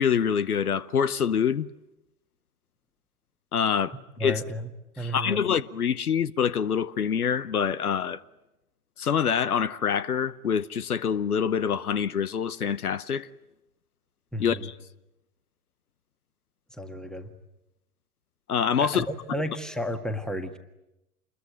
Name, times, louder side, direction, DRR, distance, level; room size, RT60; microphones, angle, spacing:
voice 1, 0.0-1.7 3.5-4.4 5.0-8.2 9.0-13.3 14.4-14.7 18.5-19.1, left 7 dB, 80° left, 0.9 m, -25 dB
voice 2, 4.2-4.7 5.0-5.4 14.3-14.7 16.8-17.3 18.8-20.6, equal, ahead, 1.7 m, -32 dB
27.5 x 21.5 x 9.4 m
figure-of-eight pair, 105°, 45 cm